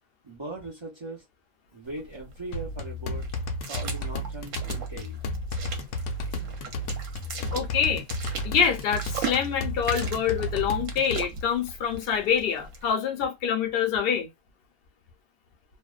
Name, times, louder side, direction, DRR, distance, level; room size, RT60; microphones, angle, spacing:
voice 1, 0.2-1.2 1.7-3.3 3.7-5.2, right 2 dB, 45° right, 0.3 m, -39 dB
sound 1, 1.8-12.9, right 5 dB, 65° right, 1.0 m, -40 dB
sound 2, 2.5-11.3, left 1 dB, 75° left, 1.0 m, -33 dB
voice 2, 7.5-8.0 8.4-14.3, left 7 dB, 60° left, 0.6 m, -26 dB
2.5 x 2.1 x 2.3 m
omnidirectional pair, 1.5 m